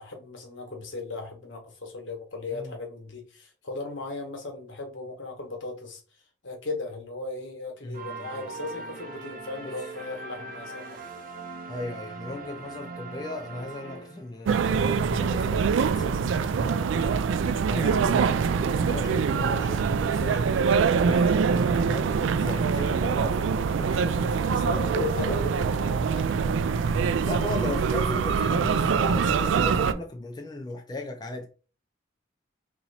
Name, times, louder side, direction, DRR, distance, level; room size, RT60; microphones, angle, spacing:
voice 1, 0.0-6.0 6.4-11.0 17.9-18.0 24.5-26.3 26.6-26.7, left 3 dB, 80° left, 1.2 m, -37 dB
voice 2, 7.8-8.2 9.6-9.8 11.7-17.3 17.6-20.5 20.9-25.4 27.2-31.5, left 2 dB, 20° left, 0.4 m, -37 dB
sound 1, 7.9-14.5, right 3 dB, 45° right, 0.6 m, -40 dB
sound 2, 14.5-29.9, right 6 dB, 80° right, 0.3 m, -24 dB
2.9 x 2.8 x 4.1 m
head